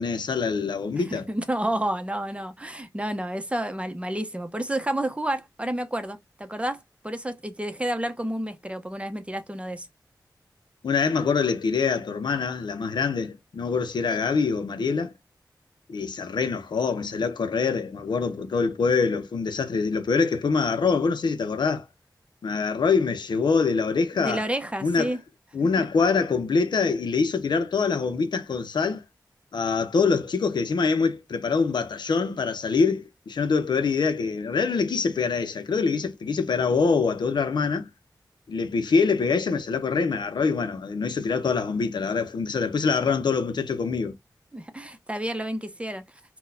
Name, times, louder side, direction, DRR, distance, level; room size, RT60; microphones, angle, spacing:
voice 1, 0.0-1.3 10.8-15.1 15.9-21.8 22.4-24.4 24.8-25.1 25.5-29.0 29.5-37.9 38.5-44.1, left 5 dB, 85° left, 0.5 m, -24 dB
voice 2, 1.0-9.9 24.2-25.2 25.8-25.9 44.5-46.0, right 1 dB, 15° right, 0.7 m, -30 dB
3.8 x 2.2 x 2.6 m
cardioid pair, 40°, 7 cm